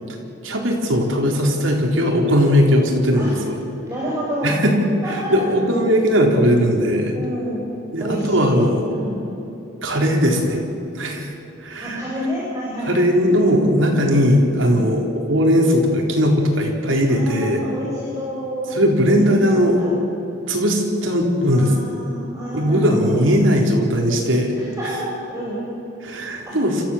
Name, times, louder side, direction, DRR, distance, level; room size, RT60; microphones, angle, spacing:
voice 1, 0.4-3.6 4.4-4.7 5.1-7.1 7.9-8.9 9.8-10.6 11.0-11.3 11.6-12.0 12.8-17.6 18.7-19.8 20.5-21.9 22.5-24.5 26.0-26.8, equal, 85° right, 0 dB, 4.0 m, -18 dB
voice 2, 3.9-4.6 5.0-5.5 7.1-7.7 8.0-8.6 8.9-9.2 11.8-12.9 13.8-14.0 14.6-14.9 17.1-18.7 19.1-19.2 19.5-19.9 21.5-23.2 24.6-25.6 26.4-26.6, equal, 15° right, -7 dB, 5.2 m, -29 dB
28.0 x 14.5 x 7.4 m, 3.0 s
head